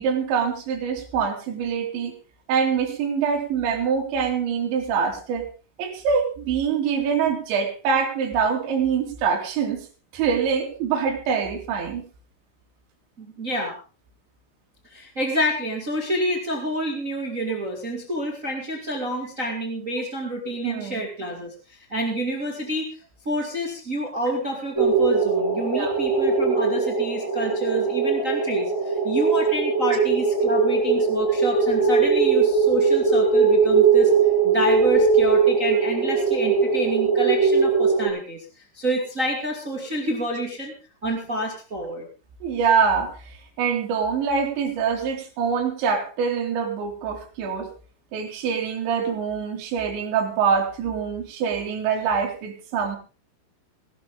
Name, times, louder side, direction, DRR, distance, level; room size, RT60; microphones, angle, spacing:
voice 1, 0.0-2.1 2.5-5.5 5.8-9.9 10.1-12.0 20.6-21.0 25.7-26.0 42.4-43.1 43.6-47.7 48.1-53.0, right 6 dB, 65° right, 0 dB, 4.9 m, -24 dB
voice 2, 13.2-13.8 14.8-23.0 23.2-34.1 34.4-40.7 41.0-42.1, right 1 dB, 40° right, 2 dB, 1.1 m, -28 dB
sound 1, 24.7-38.1, right 5 dB, 5° left, 4.1 m, -20 dB
19.5 x 12.0 x 3.8 m, 0.35 s
omnidirectional pair, 5.9 m